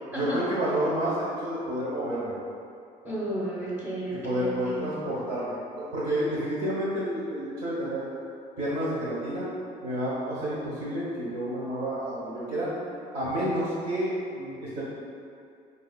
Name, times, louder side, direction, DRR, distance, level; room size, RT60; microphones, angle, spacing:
voice 1, 0.1-2.4 4.2-8.0 8.6-9.5 9.8-12.7 13.1-14.8, equal, 65° right, -10 dB, 1.1 m, -30 dB
voice 2, 3.0-4.8, right 1 dB, 15° right, -9 dB, 0.8 m, -32 dB
4.7 x 2.8 x 2.3 m, 2.5 s
cardioid pair, 165°, 15 cm